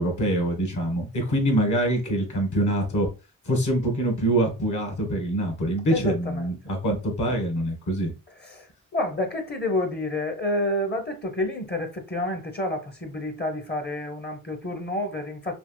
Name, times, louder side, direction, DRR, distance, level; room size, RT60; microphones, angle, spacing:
voice 1, 0.0-3.1 3.4-8.1, right 1 dB, 65° left, 1.4 m, -25 dB
voice 2, 5.9-6.7 8.4-15.6, left 1 dB, 30° left, 0.7 m, -29 dB
3.4 x 2.7 x 2.2 m
cardioid pair, 70°, 33 cm